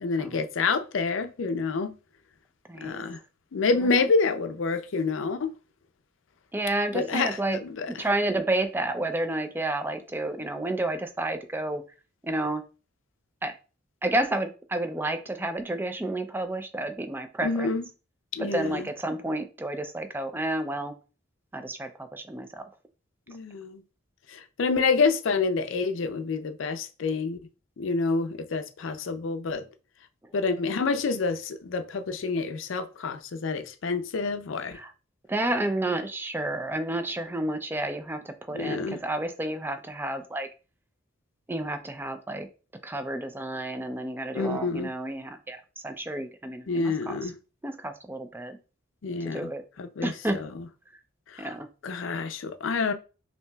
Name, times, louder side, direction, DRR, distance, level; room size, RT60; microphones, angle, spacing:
voice 1, 0.0-1.9 2.8-3.2 3.5-5.5 6.9-8.1 17.4-17.8 18.3-18.9 23.3-23.8 24.3-27.4 27.8-29.6 30.3-34.8 38.5-39.0 44.3-44.9 46.7-47.3 49.0-49.4 49.8-50.6 51.3-51.5 51.8-52.9, left 4 dB, 75° left, 0.5 m, -28 dB
voice 2, 2.7-3.0 6.5-7.6 7.9-11.8 12.2-12.6 13.4-13.5 14.0-17.7 18.4-20.9 21.5-22.6 34.7-34.9 35.3-40.5 41.5-42.5 42.8-47.3 47.6-48.6 49.3-49.6 50.0-50.4 51.4-51.7, right 1 dB, 10° right, 0.4 m, -30 dB
5.5 x 2.8 x 2.3 m
head